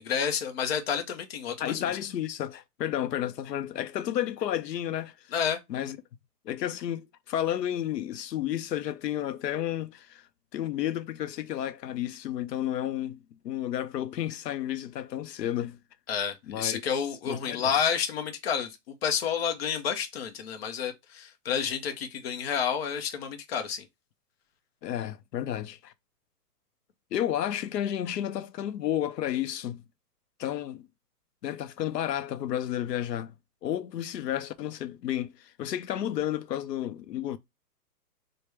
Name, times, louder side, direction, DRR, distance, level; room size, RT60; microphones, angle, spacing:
voice 1, 0.0-1.9 5.3-5.6 16.1-23.9, left 7 dB, 40° left, 0.6 m, -30 dB
voice 2, 1.6-5.2 5.7-6.0 6.4-10.2 10.5-15.8 16.5-16.8 17.2-17.7 24.8-25.9 27.1-29.8 30.4-30.9 31.4-33.3 33.6-37.4, left 11 dB, 90° left, 0.6 m, -32 dB
3.3 x 2.2 x 3.1 m
hypercardioid pair, 150°, 48 cm